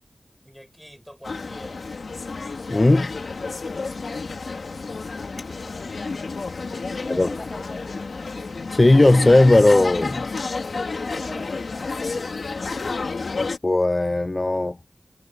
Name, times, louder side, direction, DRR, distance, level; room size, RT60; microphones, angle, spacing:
voice 1, 0.4-1.8 3.5-4.3 5.2-6.1 6.5-8.1 10.5-12.4, equal, ahead, 6.9 m, -45 dB
sound 1, 1.2-13.6, left 4 dB, 85° left, 2.8 m, -30 dB
voice 2, 2.7-3.1 7.1-7.3 8.7-10.3 13.4-14.8, left 2 dB, 35° left, 0.5 m, -17 dB
wide cardioid pair, 90°, 0 cm